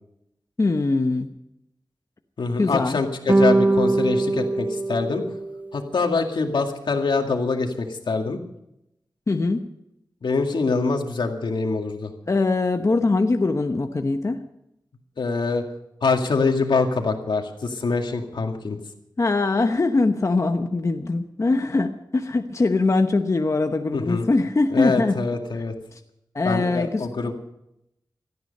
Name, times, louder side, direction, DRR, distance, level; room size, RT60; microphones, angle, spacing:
voice 1, 0.6-1.3 2.6-3.0 9.3-9.6 12.3-14.4 19.2-25.2 25.5-25.6 25.9-26.0 26.3-27.3, left 3 dB, 40° left, 5 dB, 1.0 m, -22 dB
voice 2, 2.4-5.2 5.7-8.4 10.2-12.1 15.2-15.6 16.0-18.8 23.9-24.3 24.7-25.7 26.5-27.3, left 4 dB, 80° left, 4 dB, 2.2 m, -24 dB
sound 1, 3.3-5.8, right 2 dB, 20° right, 0.5 m, -21 dB
17.5 x 13.5 x 5.5 m, 0.81 s
wide cardioid pair, 105°, 8 cm